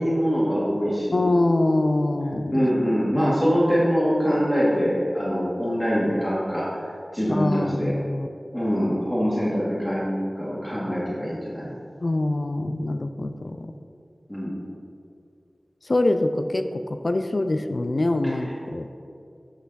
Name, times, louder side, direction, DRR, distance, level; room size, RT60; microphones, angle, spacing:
voice 1, 0.0-1.3 2.5-8.0 8.5-11.7 14.3-14.5 18.2-18.3, equal, 10° left, -9 dB, 2.0 m, -24 dB
voice 2, 1.1-2.7 3.2-3.4 7.3-8.3 12.0-13.7 15.8-18.9, left 2 dB, 60° left, 8 dB, 0.4 m, -24 dB
8.4 x 5.6 x 4.1 m, 2.5 s
wide cardioid pair, 40°, 0 cm